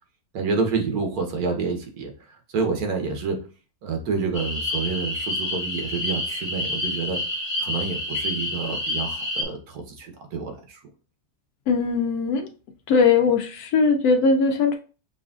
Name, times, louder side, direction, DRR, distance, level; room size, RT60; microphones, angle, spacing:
voice 1, 0.3-3.4 3.8-7.2 7.6-10.8, right 4 dB, 85° right, 1.4 m, -28 dB
sound 1, 4.3-9.4, left 2 dB, 35° left, 0.4 m, -28 dB
voice 2, 11.7-12.5 12.9-14.8, left 4 dB, 85° left, 1.1 m, -20 dB
6.0 x 2.5 x 2.3 m
omnidirectional pair, 1.5 m